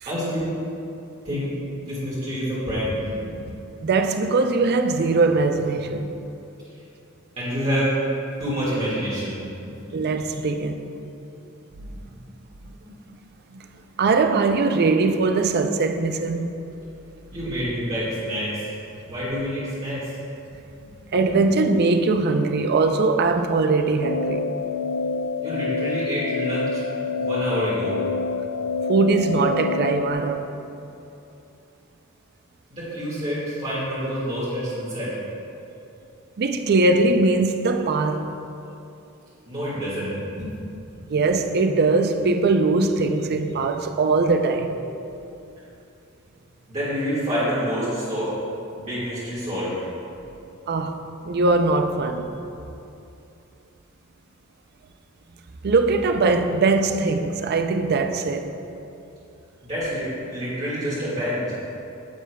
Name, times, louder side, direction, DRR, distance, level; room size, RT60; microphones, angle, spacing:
voice 1, 0.1-0.5 1.2-1.5 1.8-3.5 7.4-7.9 8.4-9.8 11.8-11.9 12.9-13.0 17.3-18.6 19.1-20.1 20.8-20.9 25.4-26.8 27.2-27.9 32.7-35.1 39.4-40.5 46.7-48.3 48.7-49.9 59.6-61.6, equal, 30° right, 1.7 m, -27 dB
voice 2, 3.8-6.2 9.9-10.9 13.5-13.7 14.0-16.5 21.1-24.5 28.9-30.5 36.4-38.3 41.1-44.8 50.7-52.4 55.6-58.5, right 3 dB, 50° right, 0.4 m, -21 dB
sound 1, 24.0-30.1, left 4 dB, 80° left, 0.4 m, -27 dB
9.4 x 7.9 x 2.2 m
head